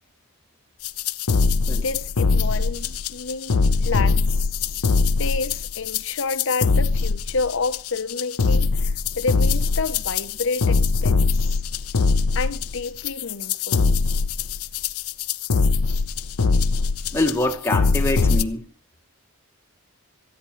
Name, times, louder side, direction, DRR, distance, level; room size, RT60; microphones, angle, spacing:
sound 1, 0.8-18.4, left 4 dB, 75° left, 0.7 m, -22 dB
voice 1, 1.7-4.9 5.2-11.6 12.3-13.9, left 4 dB, 60° left, 0.9 m, -29 dB
voice 2, 17.1-18.7, left 1 dB, 10° left, 1.4 m, -24 dB
18.5 x 14.0 x 3.2 m
head